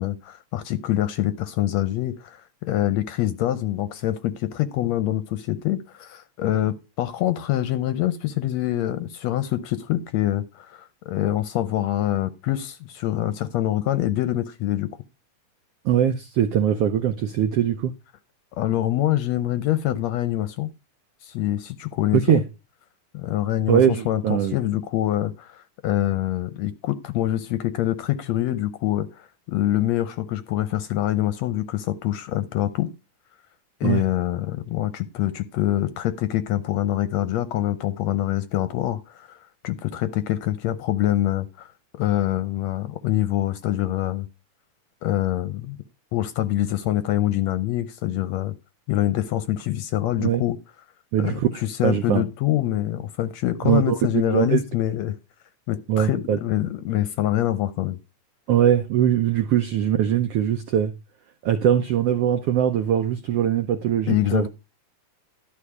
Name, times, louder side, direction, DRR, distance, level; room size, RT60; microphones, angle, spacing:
voice 1, 0.0-14.9 18.6-20.7 21.2-22.4 23.1-32.9 33.8-39.4 39.6-41.7 41.9-44.3 45.0-45.8 46.1-48.5 48.9-50.6 51.2-55.1 55.7-58.0 64.1-64.5, left 13 dB, 75° left, 1.7 m, -25 dB
voice 2, 15.8-17.9 22.1-22.4 23.7-24.6 33.8-34.0 50.2-50.4 51.1-52.2 53.6-54.6 55.9-56.4 58.5-60.9 61.4-64.5, right 10 dB, 80° right, 1.3 m, -21 dB
12.5 x 5.6 x 4.8 m
omnidirectional pair, 3.7 m